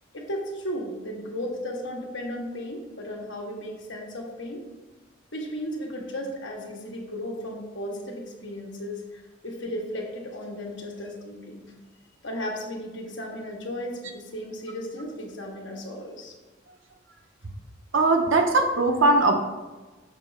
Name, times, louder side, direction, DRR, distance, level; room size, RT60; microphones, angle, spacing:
voice 1, 0.1-4.6 5.3-11.6 12.2-16.3, equal, 70° left, 0 dB, 1.2 m, -35 dB
voice 2, 17.9-19.3, right 2 dB, 80° right, 3 dB, 0.7 m, -20 dB
6.7 x 3.0 x 5.3 m, 1.2 s
head